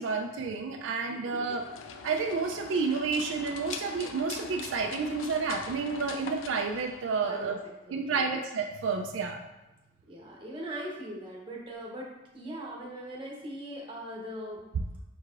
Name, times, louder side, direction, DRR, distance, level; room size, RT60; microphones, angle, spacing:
voice 1, 0.0-1.7 2.0-7.6 7.9-9.4, right 4 dB, 80° right, 3 dB, 0.4 m, -30 dB
sound 1, 1.3-7.5, left 5 dB, 90° left, 0.4 m, -43 dB
voice 2, 7.9-8.4 10.1-12.1 12.3-14.6, right 1 dB, 25° right, -2 dB, 0.9 m, -40 dB
4.7 x 4.5 x 2.4 m, 0.99 s
head